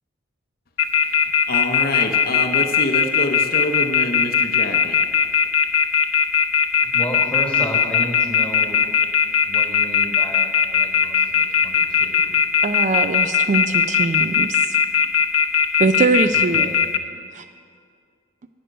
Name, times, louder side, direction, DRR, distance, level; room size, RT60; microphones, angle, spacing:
sound 1, 0.8-17.0, left 7 dB, 85° left, 0.6 m, -18 dB
voice 1, 1.5-5.0, left 1 dB, 45° left, 4 dB, 0.7 m, -26 dB
voice 2, 6.8-8.9 9.4-12.4 16.3-16.8, equal, 5° left, -1 dB, 1.4 m, -32 dB
voice 3, 12.6-14.8 15.8-16.8 17.3-17.5, right 3 dB, 35° right, 10 dB, 0.3 m, -22 dB
11.0 x 7.6 x 5.2 m, 2.1 s
head